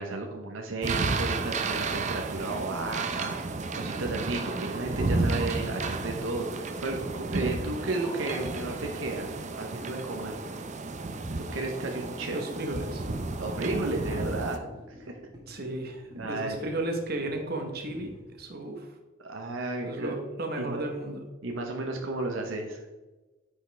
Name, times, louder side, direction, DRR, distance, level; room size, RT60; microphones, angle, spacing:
voice 1, 0.0-3.4 3.7-10.4 11.5-12.4 13.4-14.6 15.0-15.2 16.1-16.7 19.2-20.2 20.6-20.8 21.4-22.8, right 2 dB, 80° right, 2 dB, 0.9 m, -33 dB
sound 1, 0.8-14.6, right 3 dB, 35° right, 0.6 m, -32 dB
sound 2, 5.9-18.4, left 1 dB, 20° right, 1.7 m, -51 dB
sound 3, 7.2-10.2, left 1 dB, 15° left, 0.8 m, -48 dB
voice 2, 12.3-13.0 15.5-18.9 19.9-21.2, right 1 dB, 50° right, 4 dB, 1.2 m, -34 dB
9.2 x 5.5 x 3.4 m, 1.2 s
head